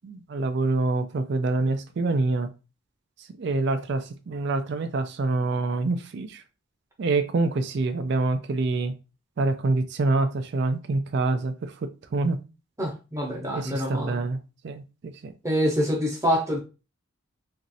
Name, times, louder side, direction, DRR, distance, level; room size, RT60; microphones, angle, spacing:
voice 1, 0.0-2.5 3.4-6.4 7.0-8.9 9.4-12.4 13.5-14.4 14.6-15.3, right 3 dB, 50° right, 9 dB, 0.3 m, -26 dB
voice 2, 12.8-14.2 15.4-16.6, equal, 15° right, -1 dB, 0.7 m, -26 dB
3.0 x 2.5 x 2.6 m, 0.30 s
head